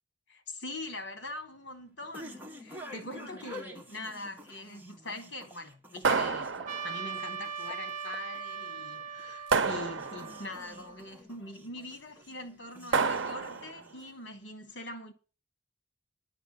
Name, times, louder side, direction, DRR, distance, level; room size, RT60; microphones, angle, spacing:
voice 1, 0.3-6.5 6.8-15.1, left 2 dB, 65° left, 2.9 m, -43 dB
sound 1, 0.8-14.4, left 1 dB, 10° right, 2.0 m, -50 dB
sound 2, 6.0-7.1 9.5-10.5 12.9-13.8, right 5 dB, 85° right, 0.7 m, -29 dB
Trumpet, 6.7-11.1, right 7 dB, 40° right, 1.0 m, -40 dB
11.5 x 6.1 x 8.6 m
head